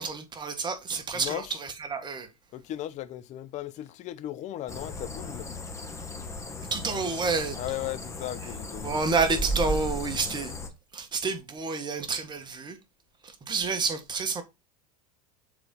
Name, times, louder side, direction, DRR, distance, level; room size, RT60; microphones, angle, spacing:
voice 1, 0.0-2.3 6.7-7.6 8.8-10.5 10.9-12.8 13.2-14.4, right 4 dB, 25° right, 1.6 m, -29 dB
voice 2, 1.1-1.6 2.5-5.5 7.5-9.5, left 13 dB, 40° left, 0.7 m, -37 dB
sound 1, 4.7-10.7, left 1 dB, 15° left, 1.5 m, -35 dB
6.7 x 4.3 x 3.9 m
hypercardioid pair, 90°, 19 cm